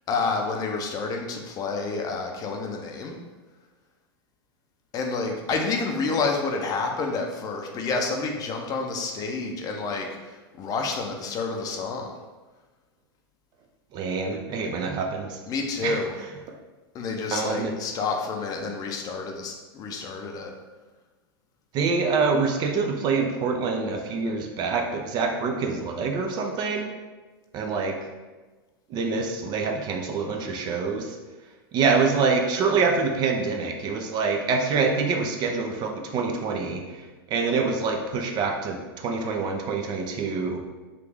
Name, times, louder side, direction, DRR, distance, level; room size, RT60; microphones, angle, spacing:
voice 1, 0.1-3.2 4.9-12.1 15.5-16.2 16.9-20.5, left 4 dB, 30° left, 2 dB, 0.5 m, -29 dB
voice 2, 13.9-15.4 15.8-16.0 17.3-17.7 21.7-26.9 27.5-28.0 28.9-31.2 31.7-40.6, right 4 dB, 35° right, 3 dB, 0.4 m, -26 dB
3.1 x 2.4 x 3.4 m, 1.2 s
hypercardioid pair, 120°, 13 cm